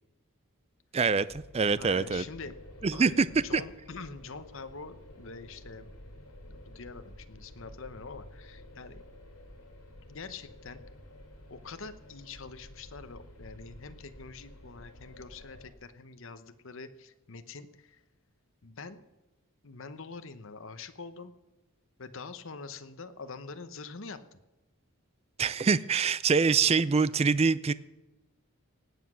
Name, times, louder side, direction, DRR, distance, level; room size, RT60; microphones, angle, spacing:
voice 1, 0.9-2.2 2.8-3.3 3.5-3.6 25.4-27.7, right 5 dB, 30° right, 18 dB, 0.3 m, -25 dB
sound 1, 1.3-15.7, left 1 dB, 85° left, 2.9 m, -51 dB
voice 2, 1.8-2.6 2.9-5.9 6.5-9.0 10.1-10.8 11.5-18.0 18.6-19.0 19.6-21.3 22.0-24.2, left 4 dB, 60° left, 11 dB, 0.9 m, -45 dB
18.5 x 8.2 x 6.2 m, 1.1 s
head